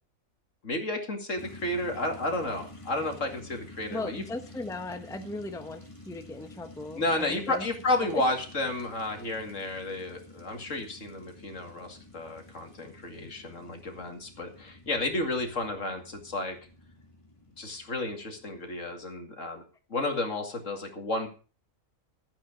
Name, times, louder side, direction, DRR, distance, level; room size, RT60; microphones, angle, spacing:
voice 1, 0.6-4.2 7.0-16.6 17.6-19.6 19.9-21.3, left 2 dB, 65° left, 4 dB, 2.6 m, -32 dB
sound 1, 1.4-19.0, left 2 dB, 25° left, 2.1 m, -50 dB
voice 2, 3.9-7.7 8.1-8.2, left 2 dB, 5° left, 7 dB, 1.0 m, -37 dB
13.5 x 8.8 x 5.1 m, 0.36 s
omnidirectional pair, 1.4 m